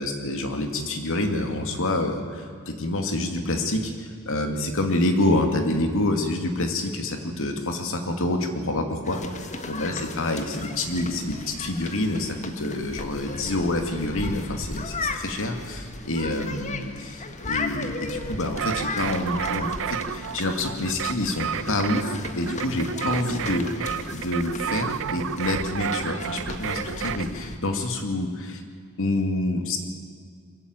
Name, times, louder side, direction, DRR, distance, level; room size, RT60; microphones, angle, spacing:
voice 1, 0.0-9.2 9.7-28.6 29.0-29.8, left 1 dB, 65° left, 5 dB, 2.6 m, -27 dB
sound 1, 9.0-27.6, left 3 dB, 35° left, 1.6 m, -36 dB
sound 2, 18.6-27.3, right 8 dB, 65° right, 0.7 m, -31 dB
23.0 x 14.5 x 9.2 m, 2.1 s
head